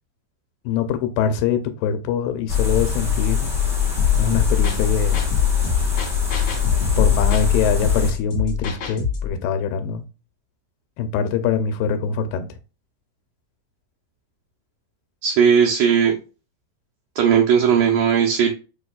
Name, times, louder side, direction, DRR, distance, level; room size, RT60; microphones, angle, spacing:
voice 1, 0.7-3.5 4.1-5.2 7.0-10.0 11.0-12.5, left 6 dB, 90° left, 2.3 m, -23 dB
sound 1, 2.5-8.1, left 8 dB, ahead, 0.6 m, -21 dB
sound 2, 4.0-9.3, left 6 dB, 55° left, 2.3 m, -26 dB
voice 2, 15.2-16.2 17.2-18.5, right 7 dB, 75° right, 1.7 m, -17 dB
6.6 x 2.8 x 2.3 m
omnidirectional pair, 4.0 m